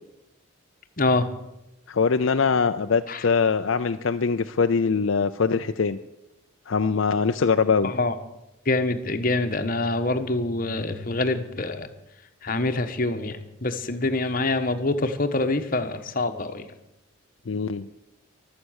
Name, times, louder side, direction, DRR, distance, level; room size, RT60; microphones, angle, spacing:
voice 1, 1.0-1.3 3.1-3.3 7.8-8.2 8.6-11.9 12.4-16.7, left 2 dB, 40° left, 7 dB, 1.2 m, -25 dB
voice 2, 1.9-6.0 6.7-7.9 17.5-17.9, left 5 dB, 65° left, 8 dB, 0.5 m, -22 dB
23.5 x 8.4 x 6.4 m, 0.93 s
head